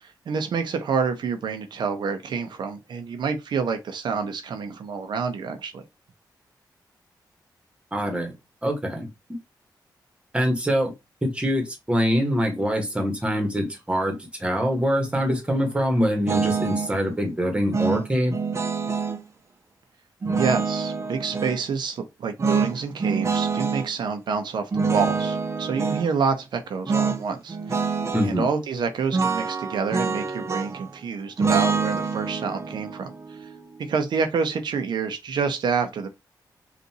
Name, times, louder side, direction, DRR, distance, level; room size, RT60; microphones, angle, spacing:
voice 1, 0.0-5.8 20.3-27.8 28.2-33.1 33.4-33.5 33.8-36.1, right 5 dB, 80° right, 0.7 m, -28 dB
voice 2, 7.9-8.3 8.6-9.4 10.3-10.9 11.2-18.3 28.1-28.5, equal, 15° right, 1.3 m, -24 dB
sound 1, 16.3-16.9 17.7-19.2 20.2-21.6 22.4-23.9 24.7-26.1 26.9-27.2 27.5-28.3 29.1-30.9 31.4-34.5, right 5 dB, 40° right, 0.6 m, -26 dB
5.4 x 2.5 x 2.9 m
wide cardioid pair, 115°, 8 cm